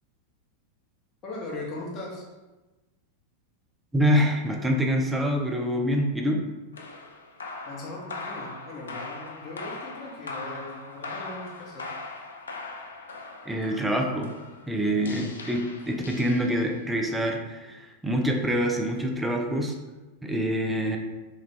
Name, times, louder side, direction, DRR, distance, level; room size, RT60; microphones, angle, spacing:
voice 1, 1.2-2.3 7.6-11.9, left 2 dB, 35° left, -3 dB, 0.9 m, -39 dB
voice 2, 3.9-6.4 13.5-14.3 14.7-19.7 20.2-21.0, equal, 5° right, 2 dB, 0.4 m, -26 dB
sound 1, 6.7-16.9, left 3 dB, 70° left, 0.3 m, -40 dB
3.1 x 2.3 x 3.3 m, 1.1 s
figure-of-eight pair, 90°, 0 cm